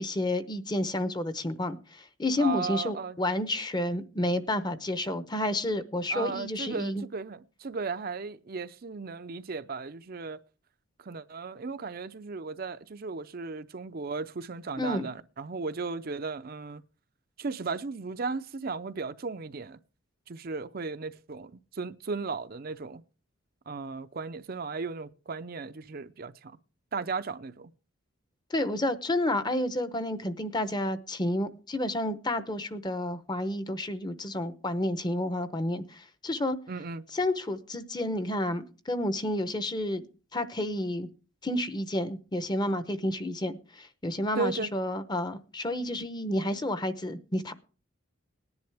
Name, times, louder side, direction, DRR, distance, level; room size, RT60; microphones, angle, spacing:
voice 1, 0.0-7.0 14.8-15.1 28.5-36.6 37.1-40.1 40.3-41.1 41.4-47.5, left 1 dB, 20° left, 0.8 m, -30 dB
voice 2, 2.4-3.2 6.1-10.4 11.0-16.8 17.4-19.8 20.3-23.0 23.7-26.6 26.9-27.7 36.7-37.0 44.4-44.7, right 4 dB, 45° right, 0.5 m, -36 dB
19.0 x 10.5 x 3.4 m
head